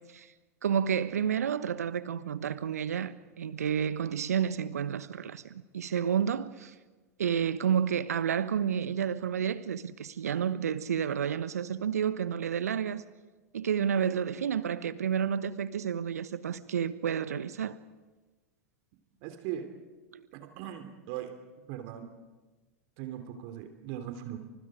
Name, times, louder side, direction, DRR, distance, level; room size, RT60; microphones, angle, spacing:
voice 1, 0.6-6.7 7.2-13.0 13.5-17.8 20.1-20.2, right 8 dB, 75° right, 1.2 m, -30 dB
voice 2, 19.2-19.7 20.3-21.3 21.7-22.1 23.0-24.4, right 11 dB, 50° right, 3.3 m, -39 dB
29.5 x 26.0 x 5.0 m
figure-of-eight pair, 90°, 8 cm